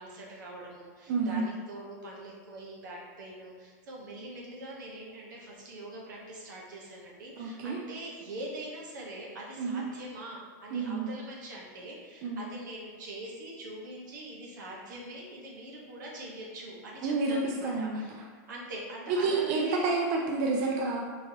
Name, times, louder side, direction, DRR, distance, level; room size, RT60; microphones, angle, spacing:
voice 1, 0.0-19.9, right 1 dB, 90° right, -3 dB, 1.1 m, -43 dB
voice 2, 1.1-1.5 7.4-7.8 9.6-9.8 10.7-11.1 12.2-12.4 17.0-18.0 19.2-21.0, right 3 dB, 45° right, -1 dB, 0.5 m, -29 dB
4.5 x 3.1 x 2.8 m, 1.5 s
supercardioid pair, 150°, 10 cm